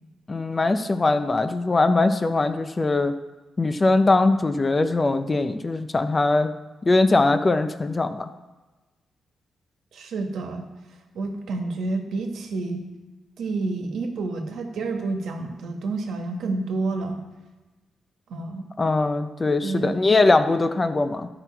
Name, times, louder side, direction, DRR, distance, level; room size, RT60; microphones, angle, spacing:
voice 1, 0.3-3.1 3.6-6.5 6.8-8.3 18.8-21.3, left 2 dB, 20° left, 9 dB, 0.4 m, -21 dB
voice 2, 9.9-10.7 11.1-12.9 13.4-17.2 18.3-18.7 19.6-19.9, right 3 dB, 70° right, 4 dB, 1.4 m, -29 dB
12.5 x 5.9 x 4.5 m, 1.2 s
wide cardioid pair, 175°, 0 cm